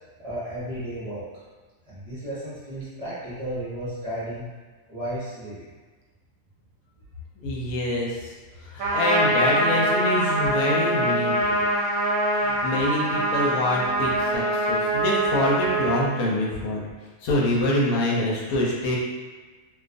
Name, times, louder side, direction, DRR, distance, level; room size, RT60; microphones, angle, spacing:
voice 1, 0.2-1.4 1.9-4.5 4.9-5.6, right 1 dB, 35° right, -12 dB, 0.7 m, -33 dB
voice 2, 7.4-8.3 8.6-11.6 12.4-16.8 17.2-19.0, left 1 dB, 90° left, -3 dB, 1.1 m, -25 dB
Trumpet, 8.8-16.0, right 1 dB, 75° right, 0.9 m, -24 dB
2.5 x 2.3 x 2.4 m, 1.4 s
omnidirectional pair, 1.5 m